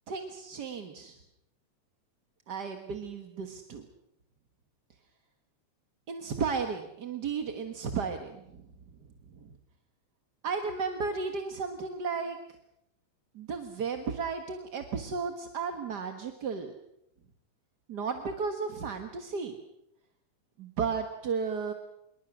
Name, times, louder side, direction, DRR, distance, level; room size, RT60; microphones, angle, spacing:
voice 1, 0.1-1.2 2.5-3.8 6.1-8.4 9.3-9.5 10.4-12.4 13.3-16.7 17.9-19.6 20.6-21.7, right 5 dB, 45° right, 6 dB, 1.6 m, -34 dB
26.0 x 22.5 x 6.3 m, 0.80 s
omnidirectional pair, 3.4 m